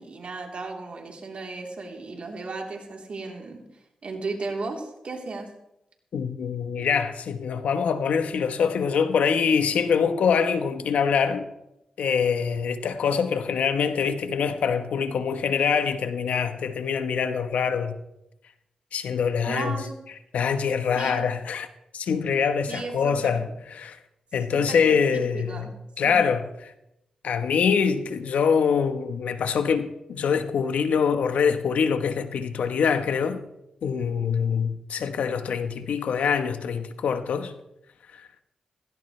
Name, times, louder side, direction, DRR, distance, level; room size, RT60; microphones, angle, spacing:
voice 1, 0.0-3.6 4.0-5.5 19.5-19.9 21.0-21.3 22.7-23.5 24.5-25.7 26.0-26.2, right 3 dB, 60° right, 3.5 m, -35 dB
voice 2, 6.1-11.5 12.0-18.0 18.9-19.8 20.3-21.7 21.9-23.4 23.7-24.0 24.3-26.4 27.2-33.4 33.8-37.5, left 6 dB, 85° left, 1.1 m, -24 dB
17.0 x 16.5 x 3.3 m
cardioid pair, 60°, 2 cm